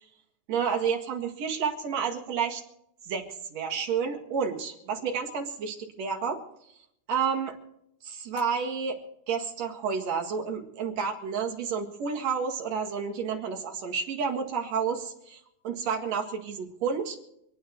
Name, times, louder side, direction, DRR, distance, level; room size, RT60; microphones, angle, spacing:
voice 1, 0.5-2.6 3.0-6.4 7.1-7.6 8.0-9.0 9.3-17.2, right 6 dB, 55° right, 2 dB, 3.0 m, -30 dB
26.5 x 9.4 x 4.6 m, 0.77 s
omnidirectional pair, 3.8 m